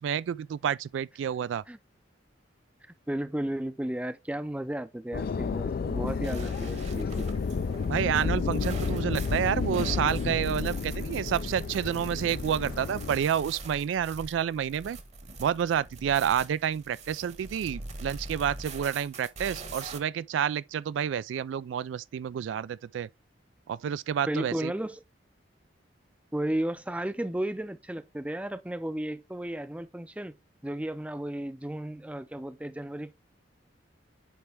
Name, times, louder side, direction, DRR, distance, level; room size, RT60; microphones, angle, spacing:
voice 1, 0.0-1.6 7.9-15.0 15.4-23.1 23.7-24.7, right 8 dB, 90° right, 0.3 m, -29 dB
voice 2, 3.1-7.4 24.3-25.0 26.3-30.3 30.6-33.1, right 1 dB, 5° right, 0.4 m, -34 dB
sound 1, 5.1-13.2, left 5 dB, 55° left, 0.4 m, -31 dB
sound 2, 6.2-20.0, right 3 dB, 40° right, 1.0 m, -43 dB
9.3 x 3.3 x 3.4 m
head